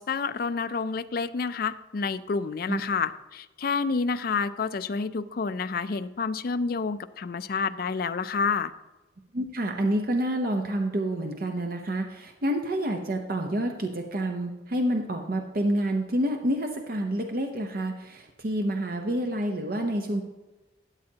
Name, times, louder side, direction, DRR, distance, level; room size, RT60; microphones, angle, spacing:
voice 1, 0.0-8.7, left 5 dB, 55° left, 12 dB, 0.4 m, -29 dB
voice 2, 9.3-20.2, right 1 dB, 50° right, 3 dB, 0.8 m, -28 dB
13.0 x 8.6 x 2.8 m, 1.1 s
head